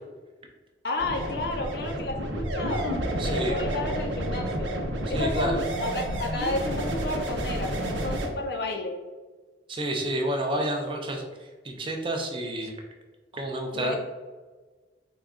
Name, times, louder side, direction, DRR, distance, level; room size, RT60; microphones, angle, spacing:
voice 1, 0.8-3.0 3.2-4.8 5.1-9.0 13.7-14.0, left 2 dB, 55° left, 4 dB, 0.5 m, -32 dB
sound 1, 1.0-8.3, right 1 dB, 90° right, 0.6 m, -30 dB
voice 2, 3.2-3.6 5.1-5.6 9.7-11.2 11.6-12.7 13.3-14.0, right 1 dB, 30° right, 2 dB, 0.5 m, -29 dB
3.8 x 2.3 x 3.6 m, 1.3 s
head